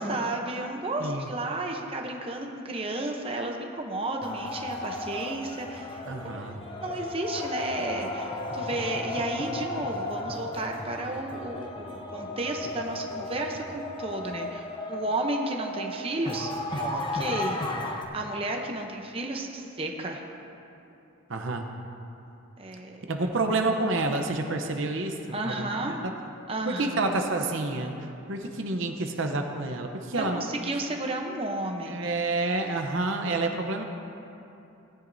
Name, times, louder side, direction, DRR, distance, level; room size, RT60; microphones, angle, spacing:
voice 1, 0.1-6.5 6.8-16.5 16.8-17.6 18.1-20.2 22.6-23.0 25.3-25.9 26.5-27.1 28.4-28.8 30.2-32.1, right 2 dB, 25° right, 2 dB, 0.7 m, -33 dB
sound 1, 4.2-18.0, left 2 dB, 20° left, 0.8 m, -35 dB
voice 2, 6.1-6.6 21.3-21.7 23.1-26.1 26.7-27.9 28.3-30.4 31.9-33.8, right 2 dB, 60° right, 4 dB, 0.8 m, -29 dB
18.0 x 10.0 x 2.7 m, 2.8 s
head